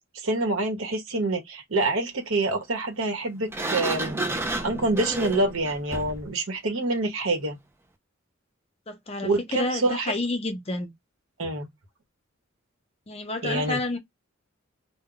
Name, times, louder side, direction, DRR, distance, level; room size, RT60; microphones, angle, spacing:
voice 1, 0.1-4.2 4.6-7.6 9.2-10.1 11.4-11.7 13.4-13.8, right 2 dB, 75° right, 1.0 m, -26 dB
Sliding door, 3.5-6.3, right 2 dB, 10° right, 0.4 m, -31 dB
voice 2, 8.9-10.9 13.1-14.0, left 2 dB, 30° left, 0.7 m, -30 dB
2.2 x 2.2 x 3.7 m
head